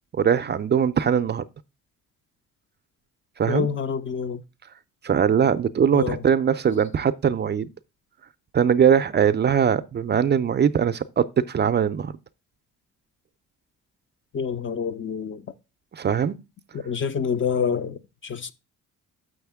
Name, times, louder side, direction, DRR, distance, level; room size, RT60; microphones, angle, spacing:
voice 1, 0.1-1.4 3.4-3.7 5.0-7.7 8.5-12.1 15.9-16.4, right 8 dB, 35° right, 0.5 m, -21 dB
voice 2, 3.5-4.4 5.9-6.2 14.3-15.4 16.7-18.5, left 6 dB, 40° left, 0.6 m, -27 dB
6.5 x 6.4 x 3.5 m
cardioid pair, 90°, 30 cm